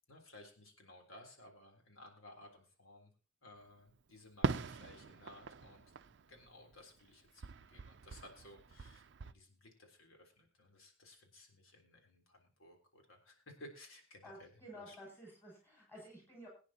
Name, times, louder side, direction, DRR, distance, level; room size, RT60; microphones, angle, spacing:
voice 1, 0.1-3.1 3.4-5.9 6.1-15.0, left 1 dB, 85° left, 2 dB, 3.6 m, -58 dB
Fireworks, 4.4-7.1 7.4-9.3, right 4 dB, 55° right, 0.5 m, -41 dB
voice 2, 14.2-16.5, equal, 10° left, -2 dB, 7.1 m, -53 dB
22.5 x 9.6 x 2.9 m, 0.35 s
head